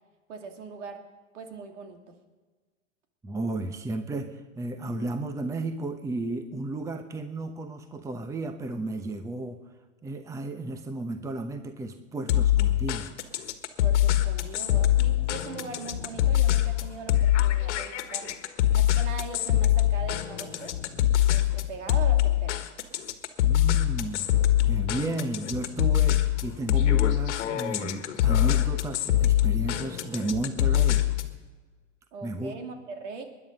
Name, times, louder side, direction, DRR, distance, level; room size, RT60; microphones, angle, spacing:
voice 1, 0.3-1.0 1.3-2.2 13.8-18.4 18.7-20.7 21.3-22.6 32.1-33.3, right 4 dB, 65° right, 5 dB, 2.6 m, -40 dB
voice 2, 3.2-9.6 10.0-13.1 23.4-24.4 24.7-31.1 32.2-32.6, right 2 dB, 10° right, 8 dB, 0.9 m, -33 dB
sound 1, 12.3-31.4, left 13 dB, 60° left, 1.6 m, -24 dB
20.5 x 10.5 x 5.4 m, 1.3 s
hypercardioid pair, 115°, 39 cm